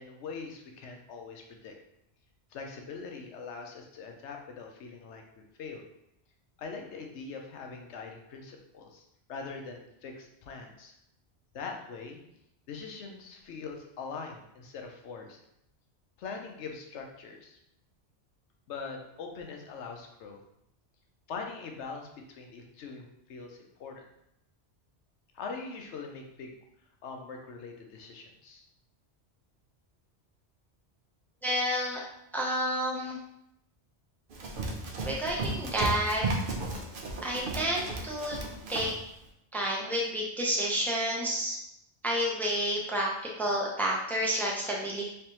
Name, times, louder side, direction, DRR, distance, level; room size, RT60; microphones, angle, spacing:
voice 1, 0.0-1.7 2.5-5.8 6.6-9.0 9.3-10.9 11.5-12.2 12.7-15.4 16.2-17.6 18.7-20.4 21.3-24.0 25.3-26.5 27.0-28.6, left 4 dB, 85° left, 2 dB, 1.0 m, -42 dB
voice 2, 31.4-32.0 32.3-33.2 35.0-36.2 37.2-38.4 38.7-38.9 39.5-41.6 42.0-45.1, equal, ahead, -3 dB, 0.4 m, -30 dB
Run, 34.3-39.0, right 2 dB, 60° right, 0.7 m, -34 dB
3.4 x 3.3 x 2.9 m, 0.78 s
omnidirectional pair, 1.1 m